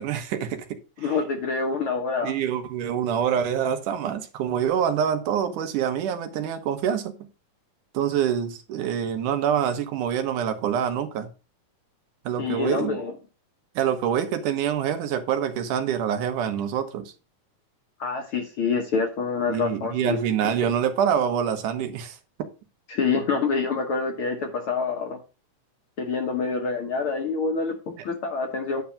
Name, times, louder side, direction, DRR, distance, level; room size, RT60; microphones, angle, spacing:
voice 1, 0.0-1.1 2.2-7.1 7.9-11.3 12.3-13.0 13.8-17.0 19.5-22.2, right 8 dB, 80° right, 2.6 m, -26 dB
voice 2, 1.0-2.3 12.4-13.2 18.0-20.2 22.9-25.2 26.0-28.8, left 4 dB, 60° left, 1.5 m, -26 dB
10.0 x 3.5 x 7.1 m
omnidirectional pair, 3.6 m